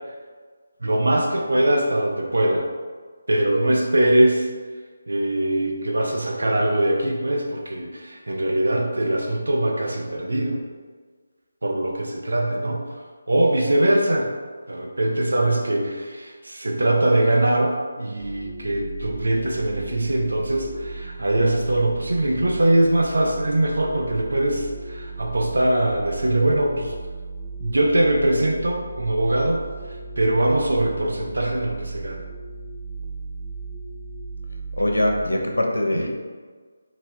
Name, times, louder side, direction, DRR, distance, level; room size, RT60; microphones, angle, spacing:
voice 1, 0.8-2.7 3.3-4.5 5.1-10.6 11.6-12.8 13.3-14.3 14.7-26.9 27.6-29.6 30.2-32.2 35.9-36.1, right 1 dB, 80° right, 1 dB, 0.8 m, -22 dB
sound 1, 18.2-35.3, right 3 dB, ahead, 0.5 m, -36 dB
voice 2, 34.8-36.1, left 1 dB, 90° left, 1 dB, 0.8 m, -22 dB
4.0 x 2.4 x 4.4 m, 1.5 s
figure-of-eight pair, 160°, 0 cm